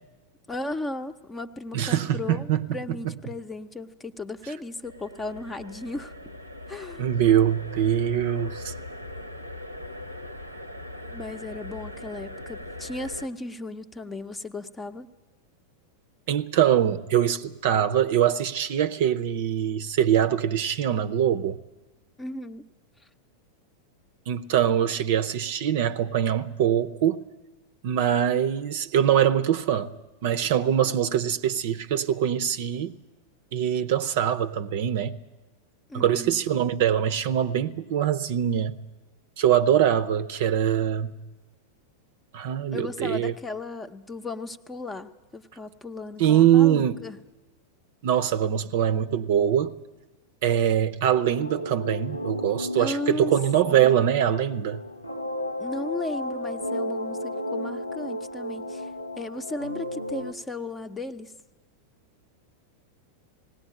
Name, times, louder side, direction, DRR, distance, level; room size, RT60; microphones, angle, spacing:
voice 1, 0.5-6.1 6.7-7.0 11.1-15.1 22.2-22.7 35.9-36.4 42.7-47.2 52.8-53.3 53.6-54.0 55.6-58.9 59.2-61.3, left 2 dB, 15° left, 0.8 m, -35 dB
voice 2, 1.7-2.7 7.0-8.7 16.3-21.6 24.3-27.2 27.8-29.9 30.2-32.9 33.5-35.2 35.9-38.8 39.4-41.1 42.3-43.3 46.2-47.0 48.0-49.8 50.4-54.8, right 10 dB, 50° right, 0.7 m, -23 dB
sound 1, 4.8-13.3, left 1 dB, 90° right, 0.9 m, -40 dB
sound 2, 51.2-60.3, left 1 dB, 90° left, 0.6 m, -33 dB
19.5 x 17.0 x 8.7 m
figure-of-eight pair, 90°, 0 cm